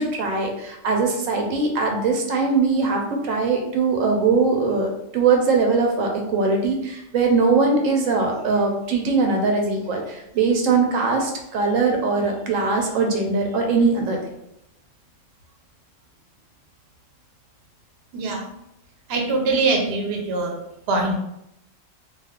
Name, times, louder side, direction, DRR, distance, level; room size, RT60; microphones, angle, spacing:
voice 1, 0.0-14.2, right 4 dB, 85° right, 2 dB, 1.0 m, -21 dB
voice 2, 18.1-18.5 19.1-20.5 20.9-21.2, right 3 dB, 60° right, 1 dB, 0.8 m, -22 dB
2.4 x 2.3 x 3.5 m, 0.81 s
omnidirectional pair, 1.3 m